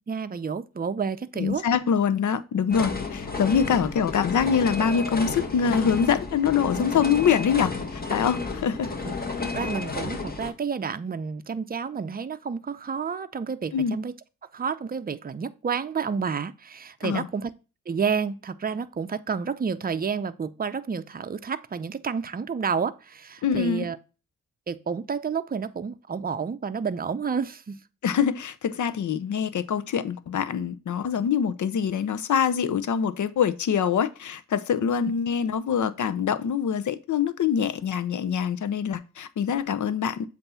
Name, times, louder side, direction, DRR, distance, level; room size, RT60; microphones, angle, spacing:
voice 1, 0.1-1.6 6.7-6.9 9.1-9.2 9.5-14.1 14.5-17.5 17.9-24.0 24.7-27.8, right 6 dB, 25° right, 0.6 m, -30 dB
voice 2, 1.4-8.9 13.7-14.0 17.0-17.3 23.4-23.9 28.0-40.2, left 7 dB, 60° left, 0.7 m, -24 dB
sound 1, 2.7-10.5, left 4 dB, 30° left, 1.4 m, -32 dB
7.8 x 2.7 x 5.6 m
cardioid pair, 60°, 33 cm